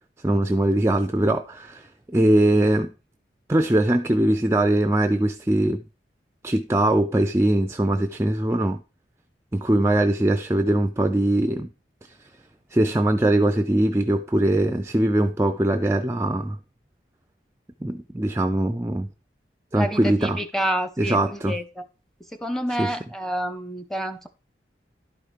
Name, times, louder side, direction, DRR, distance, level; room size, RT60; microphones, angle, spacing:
voice 1, 0.2-2.9 3.5-5.8 6.4-8.8 9.5-11.7 12.7-16.6 17.8-19.1 19.7-20.4 21.0-21.5 22.8-23.0, right 1 dB, 15° right, 0.4 m, -21 dB
voice 2, 19.7-21.8 22.3-24.3, equal, ahead, 0.8 m, -28 dB
11.5 x 4.8 x 4.6 m
head